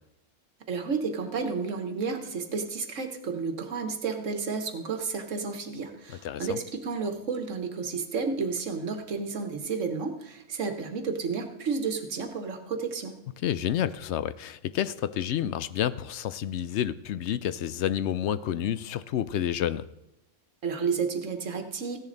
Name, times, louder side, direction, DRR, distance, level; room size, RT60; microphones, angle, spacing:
voice 1, 0.7-13.2 20.6-22.0, right 5 dB, 80° right, 7 dB, 1.5 m, -31 dB
voice 2, 6.2-6.6 13.4-19.9, left 10 dB, 70° left, 14 dB, 0.8 m, -29 dB
15.0 x 10.5 x 3.9 m, 0.88 s
omnidirectional pair, 1.3 m